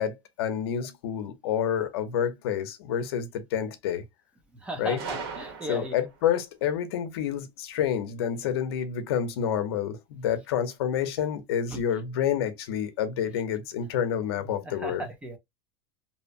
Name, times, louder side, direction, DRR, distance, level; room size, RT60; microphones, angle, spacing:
voice 1, 0.0-4.0 4.8-5.0 5.7-15.1, left 9 dB, 75° left, 0.7 m, -28 dB
voice 2, 4.5-5.9 11.7-11.8 14.6-15.4, right 1 dB, 10° right, 0.5 m, -36 dB
Gunshot gunfire, 5.0-6.2, right 5 dB, 85° right, 1.2 m, -37 dB
2.8 x 2.1 x 2.5 m
supercardioid pair, 165°, 13 cm